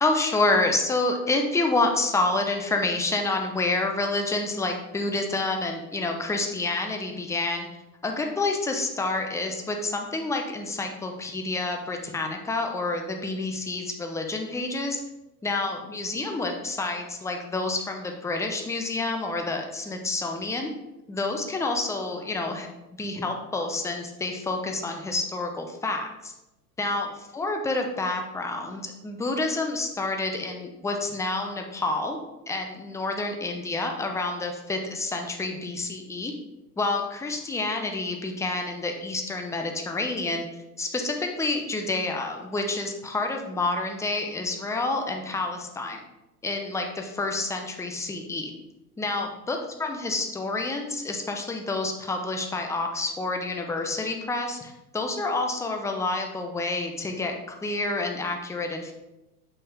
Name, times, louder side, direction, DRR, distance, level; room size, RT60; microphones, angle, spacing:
voice 1, 0.0-7.7 8.0-15.0 15.4-20.7 21.1-22.7 23.0-26.3 26.8-32.2 32.5-36.3 36.8-40.4 40.8-46.0 46.4-48.5 49.0-58.9, left 2 dB, 5° left, 3 dB, 0.8 m, -28 dB
6.6 x 5.5 x 3.6 m, 0.95 s
hypercardioid pair, 100°, 46 cm